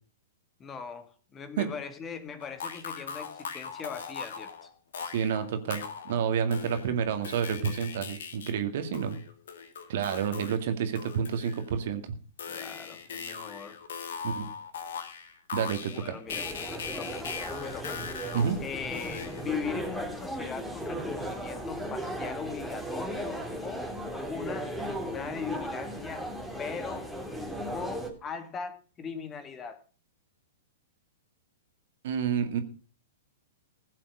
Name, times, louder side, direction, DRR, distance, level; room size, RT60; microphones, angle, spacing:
voice 1, 0.6-4.7 12.5-13.8 15.9-16.5 16.8-17.3 17.6-18.0 18.6-23.9 24.3-26.3 26.6-27.1 27.7-29.8, left 6 dB, 20° left, 1.8 m, -39 dB
sound 1, 2.4-6.2 6.5-8.5 8.9-10.6 10.9-11.8 12.4-19.5, left 6 dB, 65° left, 2.2 m, -40 dB
voice 2, 5.1-9.2 9.9-12.2 14.2-14.5 15.5-16.2 18.3-18.6 32.0-32.6, right 7 dB, 55° right, 2.2 m, -29 dB
sound 2, 16.3-28.1, equal, ahead, 3.2 m, -36 dB
16.0 x 7.5 x 6.4 m
figure-of-eight pair, 110°, 0 cm